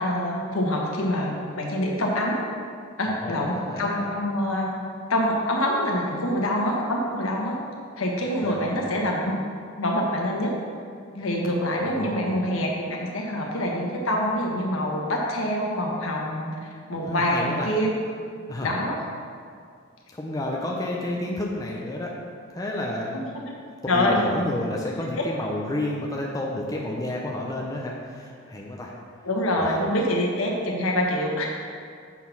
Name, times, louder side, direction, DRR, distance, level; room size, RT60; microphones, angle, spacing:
voice 1, 0.0-2.4 3.0-4.7 5.1-7.6 8.0-9.4 9.8-10.5 11.1-17.9 18.6-19.0 23.1-23.2 23.9-24.2 29.2-31.5, left 1 dB, 70° left, -1 dB, 1.2 m, -25 dB
voice 2, 3.1-4.1 8.4-9.0 11.8-12.4 17.0-17.7 18.5-18.7 20.1-22.1 22.5-23.3 23.9-28.9 29.6-29.8, left 1 dB, 15° left, -2 dB, 0.6 m, -31 dB
7.2 x 4.2 x 5.7 m, 2.2 s
head